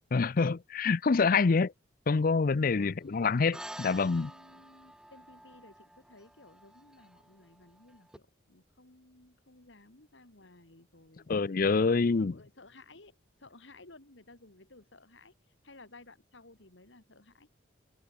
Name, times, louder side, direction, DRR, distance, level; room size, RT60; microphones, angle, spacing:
voice 1, 0.1-1.7 2.1-4.3 11.3-12.3, left 4 dB, 45° left, 0.5 m, -26 dB
voice 2, 2.7-3.0 3.8-11.3 11.9-17.5, left 2 dB, 70° left, 2.8 m, -56 dB
sound 1, 3.5-8.2, right 1 dB, 5° right, 1.2 m, -49 dB
head